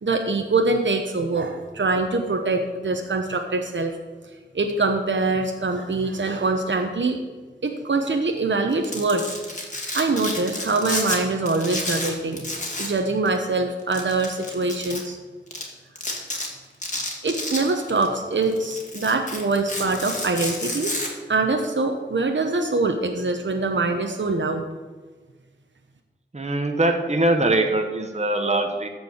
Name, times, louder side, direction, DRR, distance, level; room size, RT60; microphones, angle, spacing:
voice 1, 0.0-4.0 4.5-7.2 7.6-9.3 9.7-12.5 12.8-15.2 17.2-20.9 21.3-24.7, right 3 dB, 70° right, 4 dB, 0.9 m, -24 dB
Domestic sounds home sounds, 8.7-11.2 11.5-13.0 13.2-13.4 13.9-15.0 15.5-15.6 16.0-16.5 16.8-18.1 18.4-21.1, left 1 dB, 40° left, 2.3 m, -30 dB
voice 2, 26.3-28.9, right 2 dB, 35° right, 4 dB, 1.1 m, -22 dB
13.5 x 4.9 x 7.1 m, 1.4 s
wide cardioid pair, 65°, 20 cm